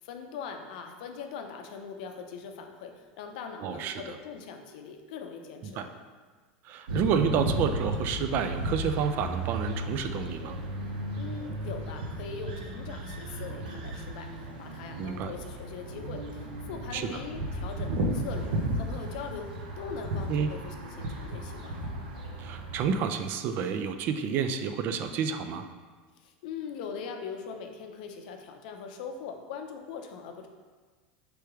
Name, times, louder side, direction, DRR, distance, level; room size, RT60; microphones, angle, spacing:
voice 1, 0.0-5.8 11.2-21.9 26.2-30.5, left 6 dB, 70° left, 4 dB, 0.5 m, -41 dB
voice 2, 3.6-4.2 5.6-5.9 6.6-10.6 15.0-15.3 16.9-17.2 20.3-20.5 22.4-25.7, right 6 dB, 45° right, 8 dB, 0.3 m, -30 dB
sound 1, 6.9-22.9, right 1 dB, 85° right, 0.6 m, -34 dB
3.4 x 3.0 x 4.8 m, 1.4 s
supercardioid pair, 125°, 5 cm